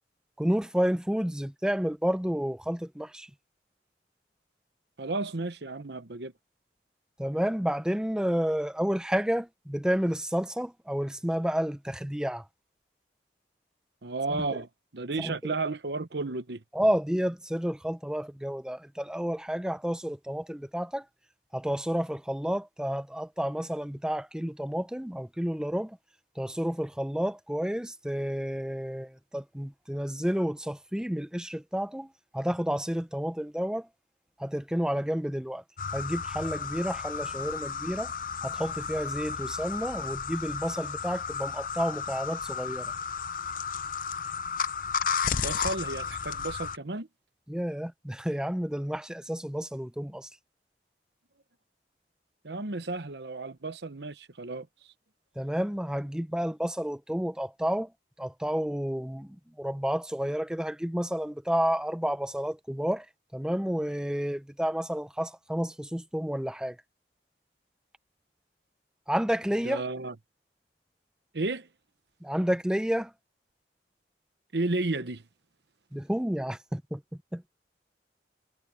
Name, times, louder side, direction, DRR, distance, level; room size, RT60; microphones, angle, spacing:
voice 1, 0.4-3.3 7.2-12.4 15.2-15.3 16.7-21.0 21.5-26.0 26.4-32.1 32.3-33.9 34.4-35.6 35.9-38.1 38.4-42.9 47.5-50.3 55.4-57.9 58.2-63.1 63.3-66.8 69.1-69.8 72.2-73.1 75.9-77.0 77.3-77.5, equal, 5° right, 0.5 m, -30 dB
voice 2, 5.0-6.3 14.0-16.6 45.3-47.1 52.4-54.7 69.6-70.1 71.3-71.7 74.5-75.2, right 3 dB, 70° right, 1.0 m, -33 dB
sound 1, 35.8-46.8, left 6 dB, 50° left, 0.6 m, -33 dB
head